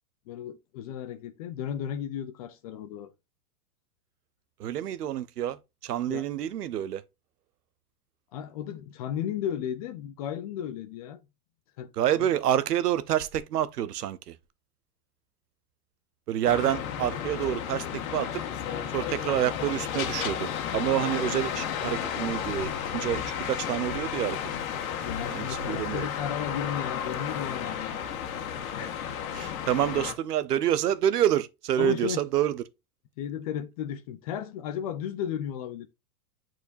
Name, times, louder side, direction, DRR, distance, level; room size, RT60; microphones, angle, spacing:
voice 1, 0.3-3.1 6.1-6.2 8.3-11.2 11.8-11.9 12.2-12.3 25.0-28.1 28.7-29.0 31.8-32.2 33.2-35.9, left 9 dB, 25° left, 0.4 m, -34 dB
voice 2, 4.6-5.6 5.8-7.0 12.0-14.3 16.3-18.3 18.9-24.4 25.3-26.1 29.3-32.6, right 11 dB, 85° right, 0.9 m, -28 dB
sound 1, 16.4-30.1, left 8 dB, 65° left, 1.6 m, -33 dB
8.3 x 4.5 x 2.6 m
hypercardioid pair, 135°, 46 cm